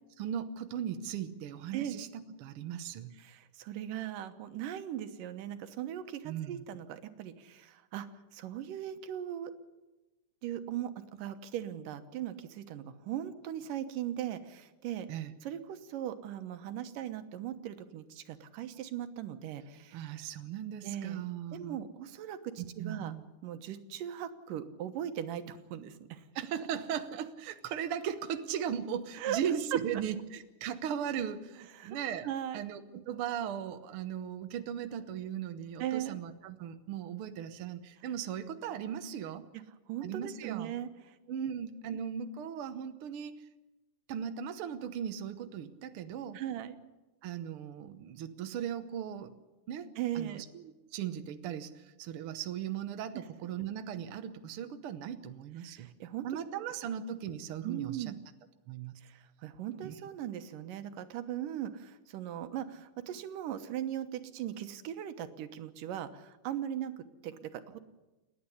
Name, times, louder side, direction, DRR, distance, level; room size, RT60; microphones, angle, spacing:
voice 1, 0.2-3.1 6.2-6.6 15.1-15.3 19.9-21.8 22.8-23.2 26.3-32.3 32.5-39.5 40.0-40.8 41.3-43.4 44.1-46.4 47.2-49.3 49.7-49.9 50.1-55.9 56.2-58.0 58.7-59.0 59.8-59.9, right 9 dB, 70° right, 8 dB, 1.3 m, -38 dB
voice 2, 3.2-8.1 8.3-9.5 10.4-15.1 15.4-20.2 20.8-21.2 21.5-23.1 23.4-26.3 29.1-29.4 31.7-32.0 32.2-32.6 35.8-36.2 39.5-39.6 39.9-41.2 41.9-42.0 46.3-46.8 50.0-50.4 53.1-53.2 55.6-56.3 56.5-56.6 57.6-58.2 59.0-67.8, right 11 dB, 90° right, 9 dB, 2.8 m, -39 dB
29.0 x 10.0 x 9.8 m, 1.1 s
omnidirectional pair, 3.7 m